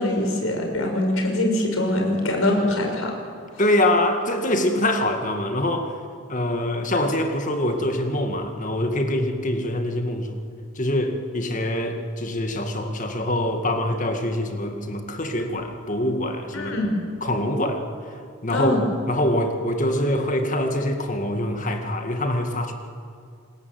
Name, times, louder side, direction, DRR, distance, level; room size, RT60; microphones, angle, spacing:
voice 1, 0.0-3.1 16.5-16.9 18.5-18.8, left 1 dB, 90° left, 2 dB, 5.4 m, -23 dB
voice 2, 3.6-6.0 6.3-10.4 10.8-16.9 17.2-17.8 18.1-18.7 19.1-22.7, left 1 dB, 40° left, 5 dB, 2.1 m, -24 dB
27.0 x 20.5 x 8.0 m, 2.3 s
head